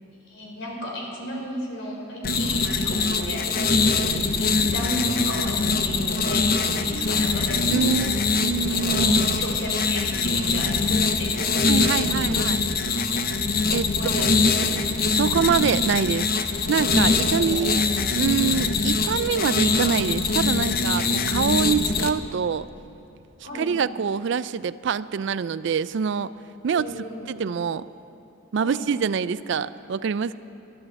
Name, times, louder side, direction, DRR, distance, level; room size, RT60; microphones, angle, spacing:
voice 1, 0.2-8.4 8.7-12.5 13.8-14.8 17.2-17.8 23.4-23.8 26.7-27.3 28.6-28.9, equal, 65° left, -1 dB, 3.5 m, -34 dB
sound 1, 2.2-22.1, left 4 dB, 50° left, 0.8 m, -23 dB
voice 2, 7.7-8.1 8.4-9.4 11.6-12.6 13.7-14.3 15.1-16.3 16.7-17.8 18.1-22.7 23.5-26.3 26.6-26.9 27.3-27.8 28.5-30.4, right 6 dB, 60° right, 16 dB, 0.4 m, -25 dB
13.0 x 13.0 x 8.1 m, 2.8 s
head